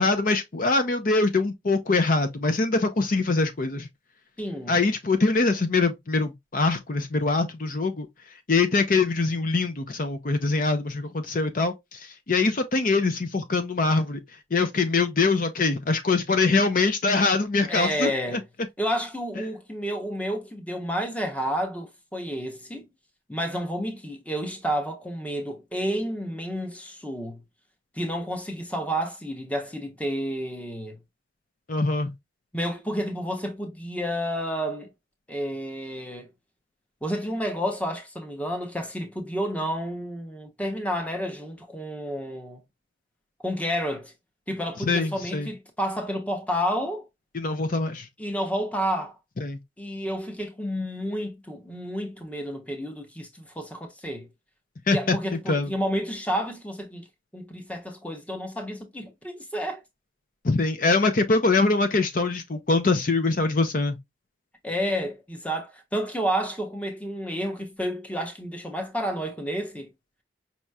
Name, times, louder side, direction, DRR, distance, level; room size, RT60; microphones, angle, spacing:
voice 1, 0.0-3.9 4.7-8.1 8.5-14.2 14.5-18.1 31.7-32.1 44.9-45.5 47.3-48.1 49.4-49.6 54.9-55.2 55.5-55.7 60.4-64.0, left 3 dB, 45° left, 0.6 m, -23 dB
voice 2, 4.4-4.8 17.7-18.4 18.8-22.9 23.3-27.4 27.9-31.0 32.5-34.9 35.3-36.3 37.0-42.6 43.4-44.1 44.5-47.1 48.2-49.1 49.8-54.3 54.9-57.1 57.3-59.8 64.6-69.9, equal, 5° left, 0.8 m, -30 dB
5.4 x 3.0 x 2.3 m
head